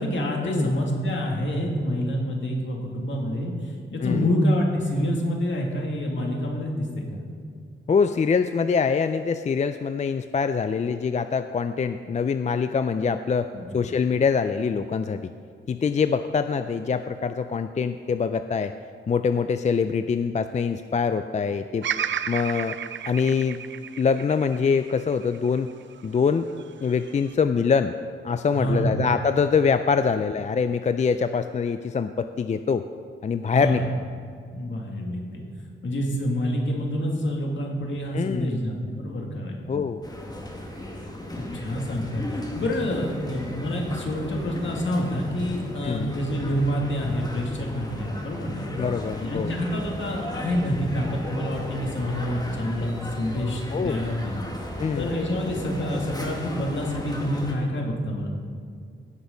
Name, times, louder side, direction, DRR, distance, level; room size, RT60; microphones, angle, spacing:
voice 1, 0.0-7.2 13.5-13.7 28.5-28.9 33.5-33.8 34.5-35.5 35.8-39.7 41.4-48.7 49.2-54.4 55.0-58.3, equal, 65° left, 0 dB, 2.1 m, -27 dB
voice 2, 7.9-15.3 15.7-18.7 19.1-21.9 22.3-22.8 23.1-23.6 24.0-25.7 26.0-26.5 26.8-27.9 28.2-32.8 33.2-33.8 38.1-38.6 39.7-40.0 45.8-46.2 48.8-49.5 53.7-54.0 54.8-55.1, left 5 dB, 35° left, 10 dB, 0.4 m, -24 dB
Bird vocalization bird call bird song, 21.8-26.0 26.6-27.3, right 9 dB, 65° right, 0.4 m, -32 dB
sound 1, 40.0-57.5, left 1 dB, 20° left, 1.8 m, -35 dB
17.0 x 6.2 x 5.1 m, 2.2 s
wide cardioid pair, 100°, 21 cm